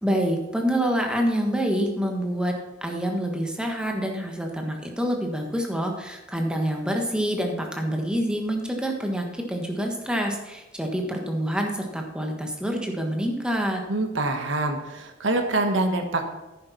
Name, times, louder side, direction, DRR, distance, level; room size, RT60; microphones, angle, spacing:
voice 1, 0.0-2.5 2.8-13.8, equal, 5° right, 2 dB, 1.4 m, -27 dB
voice 2, 13.9-16.3, right 2 dB, 75° right, 5 dB, 1.5 m, -25 dB
10.5 x 9.7 x 4.2 m, 1.0 s
head